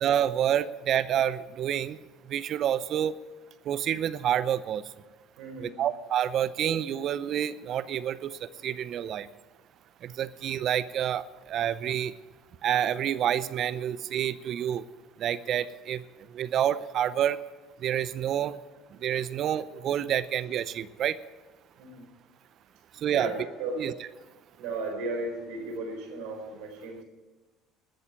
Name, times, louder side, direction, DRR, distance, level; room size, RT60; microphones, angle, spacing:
voice 1, 0.0-2.0 2.3-3.2 3.6-4.9 5.6-9.3 10.0-12.1 12.6-14.8 15.2-16.0 16.3-17.4 17.8-18.6 18.9-21.2 22.9-23.3 23.8-23.9, right 10 dB, 55° right, 16 dB, 0.6 m, -28 dB
voice 2, 5.4-5.8 21.8-22.1 23.1-23.9 24.6-27.0, right 2 dB, 75° right, 3 dB, 4.1 m, -35 dB
13.0 x 8.1 x 9.2 m, 1.2 s
hypercardioid pair, 70°, 0 cm